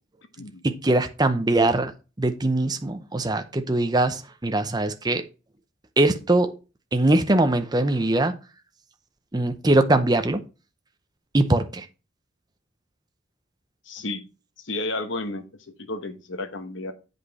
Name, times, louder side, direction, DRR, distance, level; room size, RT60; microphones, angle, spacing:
voice 1, 0.6-1.9 2.2-5.2 6.0-6.5 6.9-8.3 9.3-10.4 11.3-11.8, right 2 dB, 20° right, 0.7 m, -22 dB
voice 2, 13.8-14.3 14.6-16.9, left 2 dB, 65° left, 1.1 m, -32 dB
8.3 x 5.3 x 4.1 m
head